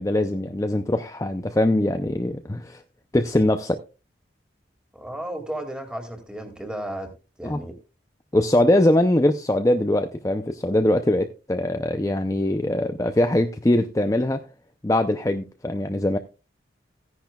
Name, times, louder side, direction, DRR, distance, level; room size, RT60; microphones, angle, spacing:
voice 1, 0.0-2.8 3.1-3.8 7.4-7.6 8.3-14.5 14.8-16.2, left 1 dB, 15° left, 0.5 m, -22 dB
voice 2, 4.9-7.1 7.4-7.7, right 1 dB, 5° right, 2.1 m, -33 dB
15.5 x 10.5 x 2.3 m
head